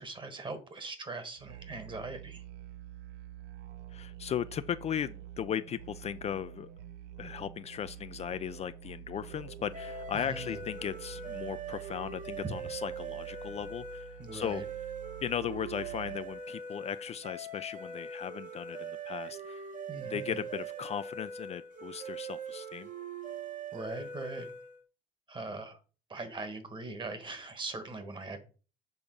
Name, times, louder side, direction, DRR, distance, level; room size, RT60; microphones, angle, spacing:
voice 1, 0.0-2.4 10.1-10.6 12.4-12.6 14.2-14.6 19.9-20.4 23.7-24.5 25.3-25.8 26.1-28.4, right 3 dB, 30° right, 1.4 m, -41 dB
Musical instrument, 1.4-16.4, right 11 dB, 85° right, 0.6 m, -47 dB
voice 2, 3.9-6.7 7.2-14.6 15.2-19.7 20.0-22.9, left 9 dB, 40° left, 0.4 m, -37 dB
sound 1, 9.7-24.8, right 4 dB, 50° right, 1.3 m, -42 dB
6.9 x 3.5 x 5.2 m
cardioid pair, 110°, 17 cm